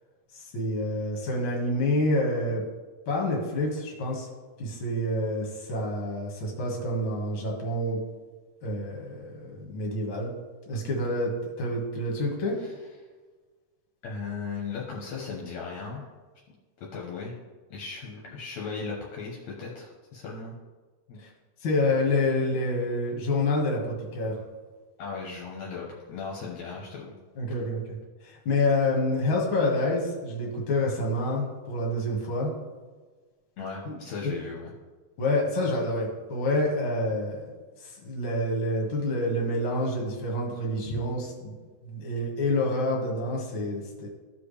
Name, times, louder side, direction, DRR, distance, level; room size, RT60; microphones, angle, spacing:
voice 1, 0.3-2.6 3.1-4.3 4.6-8.0 8.6-10.3 10.7-12.6 21.2-21.3 21.6-24.4 27.4-27.8 28.2-32.5 33.9-34.0 34.2-34.3 35.2-37.4 37.8-41.5 41.8-44.1, left 1 dB, 45° left, -2 dB, 2.4 m, -28 dB
voice 2, 14.0-16.1 16.9-17.4 17.7-20.6 21.1-21.2 25.0-27.1 33.6-34.7 40.9-41.0, left 5 dB, 70° left, -3 dB, 2.2 m, -37 dB
14.5 x 4.9 x 3.3 m, 1.4 s
omnidirectional pair, 3.5 m